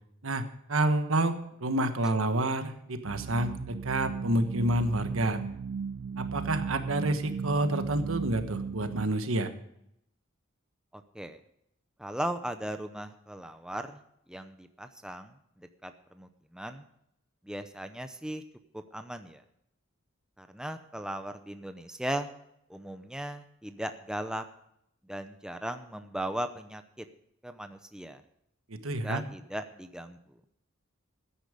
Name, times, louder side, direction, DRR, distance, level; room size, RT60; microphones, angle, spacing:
voice 1, 0.2-5.4 6.2-9.5 28.7-29.2, right 1 dB, 80° right, 8 dB, 1.3 m, -29 dB
sound 1, 3.0-9.0, right 5 dB, 60° right, 0.4 m, -36 dB
voice 2, 10.9-11.4 12.0-14.0 14.3-15.3 15.6-16.8 17.4-18.4 18.7-19.4 20.4-22.3 22.7-24.4 25.1-27.1 27.4-28.2 29.0-30.2, right 1 dB, 5° right, 8 dB, 0.7 m, -37 dB
14.0 x 10.5 x 5.1 m, 0.75 s
head